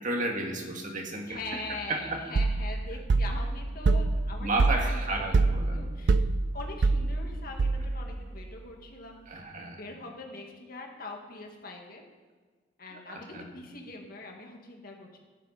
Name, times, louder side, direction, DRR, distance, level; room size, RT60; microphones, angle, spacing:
voice 1, 0.0-1.6 1.9-2.2 4.4-5.8 9.3-9.8 13.1-13.5, right 2 dB, 45° right, 2 dB, 1.8 m, -32 dB
voice 2, 1.3-6.3 6.5-9.4 9.7-12.0 12.8-15.2, left 2 dB, 55° left, 1 dB, 2.1 m, -43 dB
sound 1, 1.3-8.4, right 1 dB, 15° right, 2.4 m, -50 dB
sound 2, 2.3-8.2, right 3 dB, 75° right, 0.5 m, -26 dB
14.0 x 11.5 x 4.3 m, 1.5 s
head